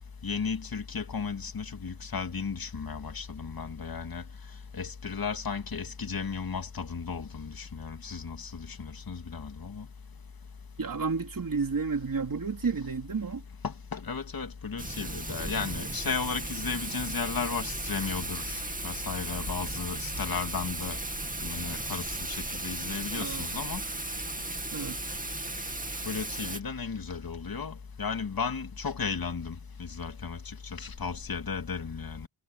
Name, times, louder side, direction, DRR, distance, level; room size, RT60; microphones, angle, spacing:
voice 1, 0.2-4.2 4.7-9.9 13.6-21.0 21.4-23.8 26.0-32.3, left 5 dB, 50° left, 2.4 m, -34 dB
voice 2, 10.8-13.4 23.1-23.5 24.7-25.0, right 5 dB, 45° right, 3.6 m, -31 dB
Thunder / Rain, 14.8-26.6, right 2 dB, 20° right, 2.5 m, -36 dB
cardioid pair, 80°, 45 cm